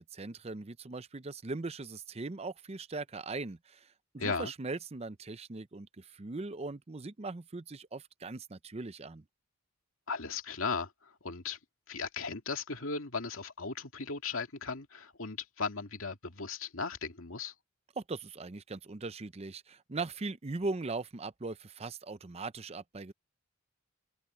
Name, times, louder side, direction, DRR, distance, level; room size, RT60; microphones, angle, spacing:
voice 1, 0.0-3.9 4.1-9.2 18.0-23.1, right 3 dB, 30° right, 0.6 m, -40 dB
voice 2, 4.2-4.5 10.1-11.6 11.9-17.5, left 4 dB, 65° left, 2.4 m, -37 dB
head